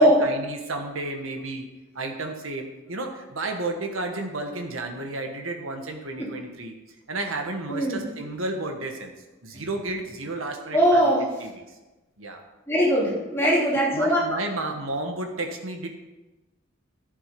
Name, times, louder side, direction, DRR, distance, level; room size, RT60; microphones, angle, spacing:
voice 1, 0.0-1.7 1.9-6.7 7.1-9.1 9.4-11.1 11.4-11.6 12.2-12.4 13.9-15.9, right 2 dB, 75° right, 4 dB, 1.4 m, -32 dB
voice 2, 7.7-8.0 9.5-9.6 10.7-11.2 12.7-14.2, equal, 10° left, -6 dB, 3.1 m, -20 dB
11.5 x 7.4 x 5.3 m, 1.1 s
head